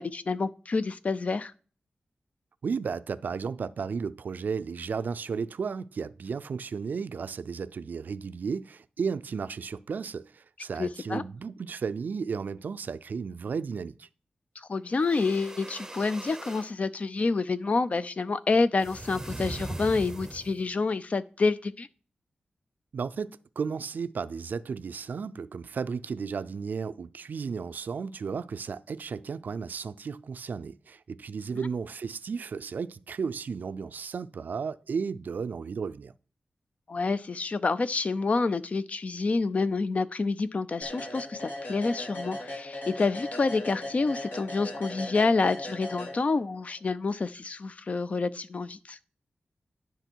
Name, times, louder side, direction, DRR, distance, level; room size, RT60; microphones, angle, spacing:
voice 1, 0.0-1.5 10.8-11.2 14.6-21.9 36.9-49.0, left 4 dB, 45° left, 0.5 m, -28 dB
voice 2, 2.6-14.1 22.9-36.1, right 5 dB, 70° right, 0.4 m, -34 dB
sound 1, 14.9-16.7 18.8-20.7, right 2 dB, 15° right, 0.7 m, -40 dB
sound 2, 40.8-46.6, left 1 dB, 75° left, 3.0 m, -38 dB
10.5 x 6.1 x 4.5 m
wide cardioid pair, 115°, 3 cm